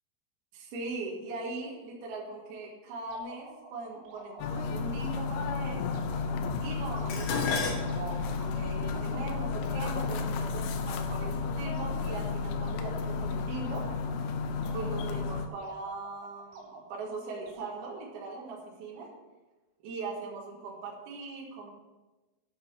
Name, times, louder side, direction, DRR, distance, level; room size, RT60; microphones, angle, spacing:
voice 1, 0.5-5.9 6.6-13.9 14.7-19.1 19.8-21.7, right 3 dB, 60° right, -2 dB, 3.1 m, -40 dB
sound 1, 3.1-18.5, right 3 dB, 85° right, 5.0 m, -51 dB
sound 2, 4.4-15.5, left 4 dB, 90° left, 3.3 m, -32 dB
Dishes pots and pans, 7.1-11.5 12.3-12.7 13.1-14.0 14.2-14.3, left 4 dB, 65° left, 2.7 m, -36 dB
10.5 x 6.7 x 6.6 m, 1.2 s
omnidirectional pair, 6.0 m